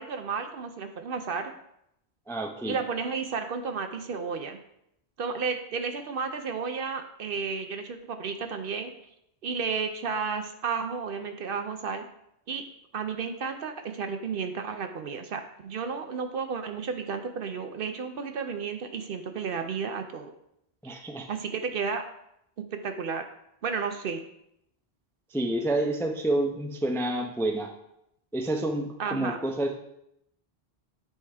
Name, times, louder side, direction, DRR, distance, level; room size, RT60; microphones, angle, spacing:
voice 1, 0.0-1.5 2.7-4.6 5.2-8.9 9.4-12.1 12.5-12.6 12.9-20.3 21.3-22.0 22.7-23.2 23.6-24.2 29.0-29.4, right 5 dB, 60° right, 7 dB, 0.7 m, -32 dB
voice 2, 2.3-2.8 20.8-21.3 25.3-27.7 28.3-29.7, right 1 dB, 5° left, 3 dB, 0.4 m, -28 dB
8.3 x 3.4 x 4.8 m, 0.78 s
omnidirectional pair, 1.1 m